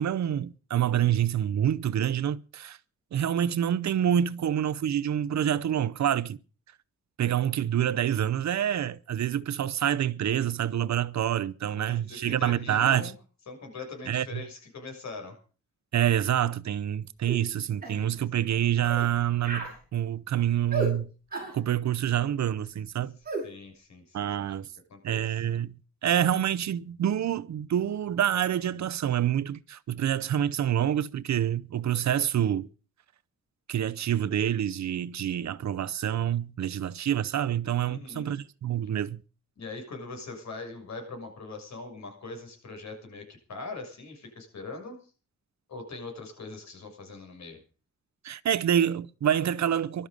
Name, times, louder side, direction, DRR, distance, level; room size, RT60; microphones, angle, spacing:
voice 1, 0.0-2.8 3.1-6.4 7.2-13.1 14.1-14.4 15.9-21.1 21.5-23.1 24.1-24.7 25.0-25.7 26.0-32.7 33.7-39.2 48.2-50.1, right 10 dB, 65° right, 0.8 m, -27 dB
voice 2, 11.9-13.1 13.5-15.4 18.5-18.6 23.4-24.5 24.9-25.4 37.8-38.4 39.6-45.0 45.7-47.6, left 3 dB, 65° left, 6.6 m, -41 dB
sound 1, 17.3-17.4 17.8-18.0 18.8-19.1 19.4-19.8 20.7-20.9 21.3-21.6 23.2-23.5, right 3 dB, 30° right, 7.9 m, -32 dB
19.5 x 12.5 x 5.2 m
wide cardioid pair, 150°, 29 cm